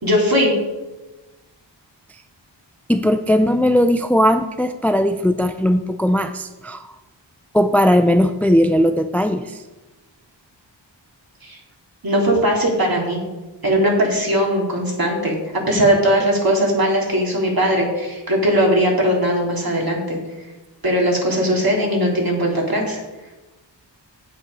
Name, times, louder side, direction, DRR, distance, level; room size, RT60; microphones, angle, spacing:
voice 1, 0.0-0.5 11.4-11.6 12.0-13.2 13.6-15.4 15.7-20.2 20.8-23.0, equal, 50° right, -1 dB, 3.1 m, -19 dB
voice 2, 2.9-6.9 7.5-9.6, equal, 5° left, 8 dB, 0.5 m, -18 dB
8.6 x 7.2 x 5.5 m, 1.1 s
cardioid pair, 50°, 45 cm